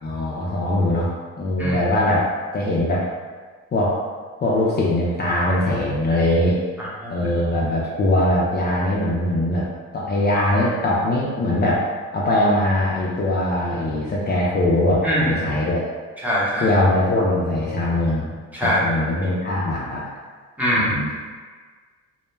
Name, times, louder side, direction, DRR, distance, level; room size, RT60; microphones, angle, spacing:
voice 1, 0.0-1.1 1.4-2.3 2.5-3.1 3.7-4.0 4.4-6.6 7.1-9.7 9.9-11.8 12.1-15.8 16.6-20.0 20.7-21.1, left 1 dB, 35° left, -6 dB, 0.4 m, -21 dB
voice 2, 6.8-7.3 15.0-15.4 16.2-16.7 18.5-18.8 20.6-21.0, equal, 5° right, -7 dB, 0.7 m, -23 dB
2.1 x 2.1 x 3.1 m, 1.5 s
cardioid pair, 90°, 30 cm